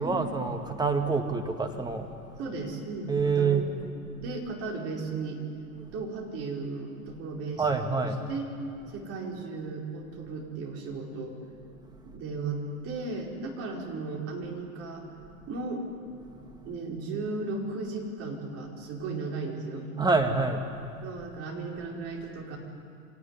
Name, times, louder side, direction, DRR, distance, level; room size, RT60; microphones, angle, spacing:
voice 1, 0.0-2.5 3.1-3.7 5.8-6.0 7.6-8.3 8.9-9.0 11.8-12.2 15.3-15.6 16.1-16.8 20.0-21.1, right 4 dB, 10° right, 4 dB, 2.1 m, -28 dB
voice 2, 2.4-3.7 4.2-5.4 5.9-8.5 8.9-11.3 12.1-15.0 15.5-15.8 16.6-19.9 21.0-22.6, right 3 dB, 35° right, -1 dB, 4.9 m, -35 dB
25.5 x 18.0 x 9.8 m, 2.5 s
figure-of-eight pair, 95°, 43 cm